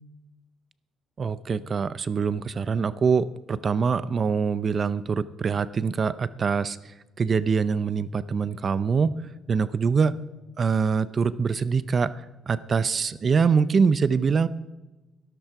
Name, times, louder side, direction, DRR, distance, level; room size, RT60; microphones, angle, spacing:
voice 1, 1.2-6.8 7.2-9.1 9.5-10.2 10.6-12.1 12.5-14.5, right 5 dB, 40° right, 17 dB, 0.6 m, -24 dB
12.5 x 12.0 x 4.7 m, 1.1 s
cardioid pair, 105°, 0 cm